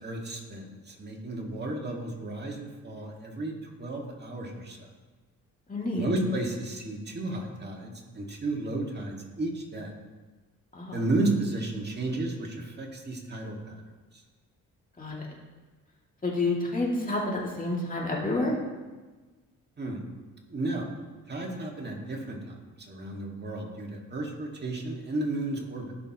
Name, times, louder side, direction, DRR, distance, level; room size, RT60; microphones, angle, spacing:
voice 1, 0.0-3.5 3.8-4.9 5.9-9.9 10.9-13.8 19.8-20.0 20.5-20.9 21.3-22.5 22.9-25.9, right 2 dB, 30° right, 0 dB, 2.0 m, -33 dB
voice 2, 5.7-6.1 10.7-11.0 15.0-15.1 16.2-18.5, left 2 dB, 25° left, -3 dB, 2.5 m, -29 dB
15.5 x 6.2 x 3.0 m, 1.3 s
cardioid pair, 95°, 32 cm